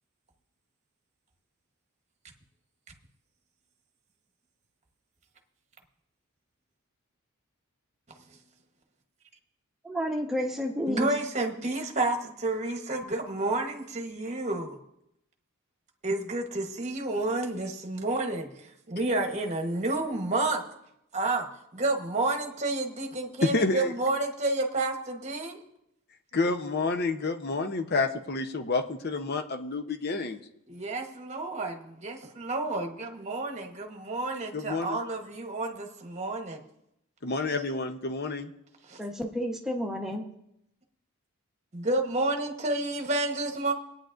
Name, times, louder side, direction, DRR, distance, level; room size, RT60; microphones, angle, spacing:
voice 1, 9.8-11.1 39.0-40.2, equal, ahead, 1.1 m, -31 dB
voice 2, 10.8-14.8 16.0-20.6 21.1-25.6 30.7-36.6 38.9-39.0 41.7-43.7, right 2 dB, 30° right, 1.1 m, -30 dB
voice 3, 23.4-23.9 26.3-30.4 34.5-35.0 37.2-38.5, left 3 dB, 45° left, 0.8 m, -29 dB
21.5 x 9.2 x 2.6 m
head